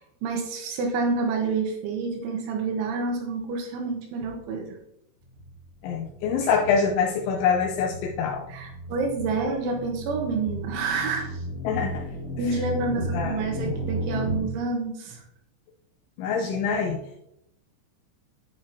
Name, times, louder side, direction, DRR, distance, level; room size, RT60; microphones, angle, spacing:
voice 1, 0.2-4.7 8.5-11.3 12.4-15.2, right 4 dB, 75° right, 2 dB, 3.5 m, -28 dB
sound 1, 5.3-14.4, equal, 50° left, 4.2 m, -34 dB
voice 2, 5.8-8.4 11.6-12.0 12.5-12.6 13.1-13.8 16.2-17.0, left 6 dB, 80° left, 1 dB, 3.0 m, -25 dB
9.6 x 9.6 x 2.9 m, 0.76 s
omnidirectional pair, 5.9 m